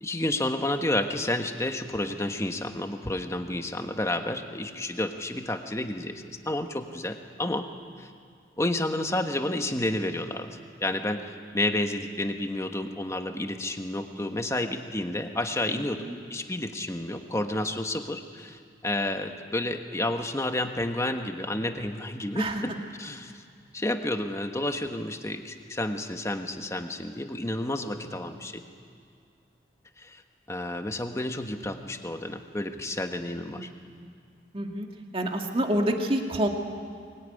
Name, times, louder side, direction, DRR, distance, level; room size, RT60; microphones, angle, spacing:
voice 1, 0.0-7.7 8.0-8.1 8.6-22.7 23.0-23.4 23.7-28.6 30.0-30.2 30.5-33.7, left 1 dB, 15° left, 6 dB, 1.4 m, -30 dB
voice 2, 15.7-16.2 22.4-22.6 33.5-34.1 34.5-34.9 35.1-36.5, right 1 dB, 30° right, 3 dB, 2.0 m, -28 dB
23.0 x 21.0 x 9.9 m, 2.2 s
head